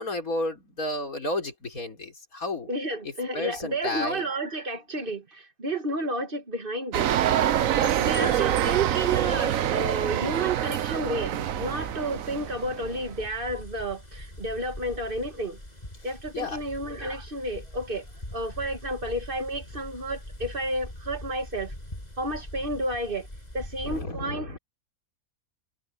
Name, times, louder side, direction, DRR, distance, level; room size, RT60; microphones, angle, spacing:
voice 1, 0.0-2.7 3.0-4.2 7.7-8.5 16.3-16.6 23.8-24.6, left 2 dB, 80° left, 4.6 m, -32 dB
voice 2, 2.7-7.1 8.0-15.6 16.0-18.0 18.3-21.7 22.2-23.3 23.5-24.6, right 2 dB, 40° right, 2.4 m, -31 dB
sound 1, 6.9-13.2, right 11 dB, 70° right, 1.1 m, -26 dB
sound 2, 8.1-24.1, left 1 dB, 30° left, 7.6 m, -43 dB
omnidirectional pair, 1.5 m